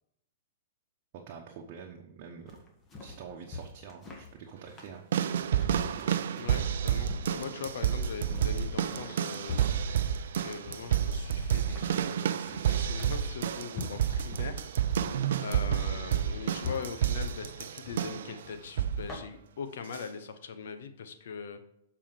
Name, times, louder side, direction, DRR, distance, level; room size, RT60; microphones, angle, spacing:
voice 1, 1.1-2.6 3.0-5.0, right 6 dB, 50° right, 0 dB, 1.1 m, -46 dB
sound 1, 2.5-19.2, left 3 dB, 20° left, 1.7 m, -45 dB
sound 2, 5.1-18.3 18.8-19.1 19.9-20.0, right 9 dB, 70° right, 0.5 m, -30 dB
voice 2, 6.4-9.6 10.4-15.1 15.4-21.6, left 6 dB, 70° left, 9 dB, 1.0 m, -41 dB
7.2 x 4.9 x 5.2 m, 0.80 s
hypercardioid pair, 125°, 0 cm